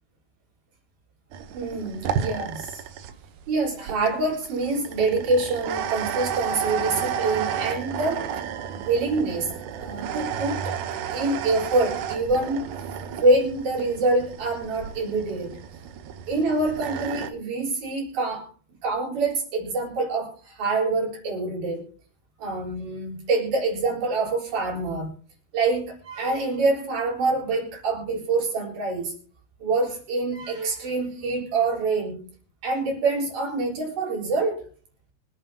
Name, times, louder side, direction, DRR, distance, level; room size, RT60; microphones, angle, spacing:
sound 1, 1.3-17.3, right 8 dB, 70° right, 2.1 m, -32 dB
voice 1, 1.5-2.8 3.5-8.3 8.7-10.8 11.1-12.7 13.2-15.6 16.3-18.5 18.8-21.9 22.4-25.1 25.5-29.2 29.6-32.2 32.6-34.6, right 3 dB, 55° right, -1 dB, 5.3 m, -26 dB
24.5 x 9.1 x 2.8 m, 0.43 s
omnidirectional pair, 4.7 m